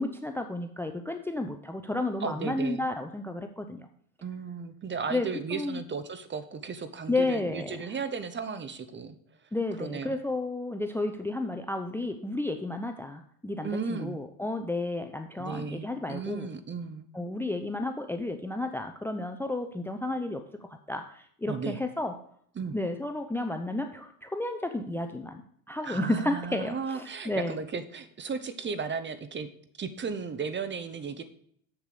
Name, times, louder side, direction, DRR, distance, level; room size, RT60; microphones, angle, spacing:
voice 1, 0.0-3.9 5.1-5.8 7.1-7.8 9.5-16.5 17.1-22.2 22.7-27.6, left 2 dB, 5° left, 8 dB, 0.7 m, -32 dB
voice 2, 2.2-2.8 4.2-9.2 9.8-10.2 13.6-14.2 15.4-17.1 21.5-21.8 22.6-22.8 25.8-29.5 29.8-31.2, right 5 dB, 25° right, 11 dB, 1.1 m, -35 dB
7.2 x 6.8 x 6.8 m, 0.64 s
supercardioid pair, 90°, 43 cm